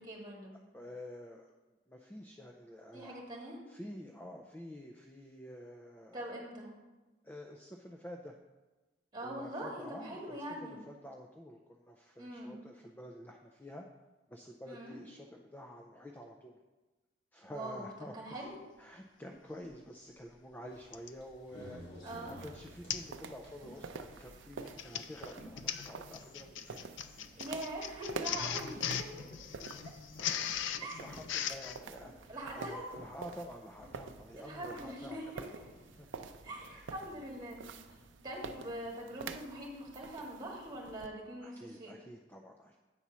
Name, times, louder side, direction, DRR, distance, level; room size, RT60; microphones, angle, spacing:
voice 1, 0.1-0.5 2.9-3.6 6.1-6.7 9.1-10.8 12.2-12.5 14.6-15.0 17.4-17.9 18.1-18.6 22.0-22.4 27.4-29.1 29.9-30.0 30.8-31.0 32.3-32.8 34.4-35.4 36.4-37.8 38.2-41.9, right 1 dB, 25° right, -2 dB, 1.8 m, -43 dB
voice 2, 0.7-1.5 1.9-3.2 3.7-6.3 7.2-8.4 9.2-13.9 14.3-16.6 17.3-18.5 18.8-21.8 22.3-26.9 29.7-29.8 30.3-35.5 36.0-36.1 36.7-36.9 41.4-42.8, left 1 dB, 10° left, 3 dB, 0.4 m, -49 dB
Printer, 19.7-19.8 20.9-21.2 21.8-22.0 22.3-22.4 22.9-23.2 23.5-23.8 24.5-31.8, left 9 dB, 90° left, 0.4 m, -39 dB
sound 1, 20.7-38.9, equal, 65° left, 2.3 m, -57 dB
sound 2, 22.1-41.1, right 5 dB, 90° right, 0.5 m, -49 dB
8.1 x 4.2 x 6.0 m, 1.2 s
head